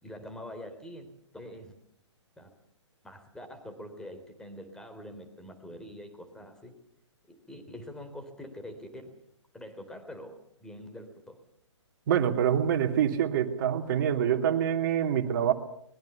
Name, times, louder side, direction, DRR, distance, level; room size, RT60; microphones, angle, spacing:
voice 1, 0.0-1.1 1.3-1.7 2.4-2.5 3.0-6.7 7.3-9.2 9.5-11.4, left 1 dB, 5° left, 7 dB, 3.5 m, -44 dB
voice 2, 12.1-15.5, right 9 dB, 40° right, 6 dB, 2.9 m, -26 dB
24.5 x 21.5 x 7.1 m, 0.72 s
figure-of-eight pair, 130°, 16 cm